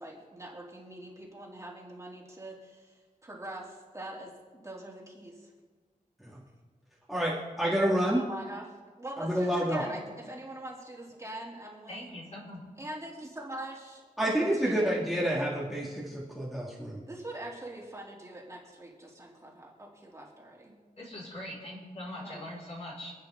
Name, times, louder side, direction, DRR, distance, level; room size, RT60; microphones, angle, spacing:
voice 1, 0.0-5.5 7.9-8.7 9.0-12.1 12.8-14.0 14.4-14.9 17.1-20.8 22.1-22.4, right 1 dB, 20° right, -3 dB, 3.1 m, -43 dB
voice 2, 7.1-8.2 9.2-9.8 14.2-17.0, equal, ahead, -5 dB, 2.5 m, -28 dB
voice 3, 11.9-12.6 21.0-23.1, left 1 dB, 45° left, -4 dB, 5.4 m, -42 dB
28.0 x 9.5 x 3.8 m, 1.4 s
wide cardioid pair, 110°, 15 cm